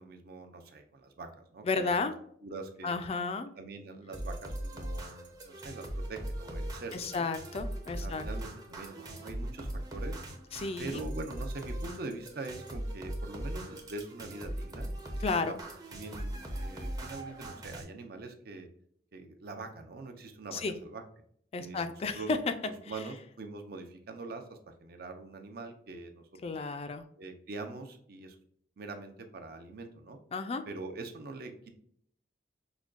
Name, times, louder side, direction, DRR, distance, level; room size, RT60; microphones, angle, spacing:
voice 1, 0.0-2.1 2.4-3.0 3.6-7.3 8.0-10.2 10.8-14.9 15.4-15.5 15.9-18.7 19.1-21.0 21.6-22.3 22.9-26.3 27.2-28.4 28.8-30.2 30.7-31.7, right 3 dB, 60° right, 6 dB, 0.5 m, -43 dB
voice 2, 1.6-2.1 2.8-3.5 6.9-8.2 10.5-11.0 15.2-15.6 20.5-20.7 21.5-22.4 26.4-27.0 30.3-30.6, left 4 dB, 35° left, 9 dB, 0.3 m, -32 dB
sound 1, 4.1-17.8, right 1 dB, 20° right, 0.6 m, -39 dB
5.0 x 2.2 x 2.4 m, 0.66 s
head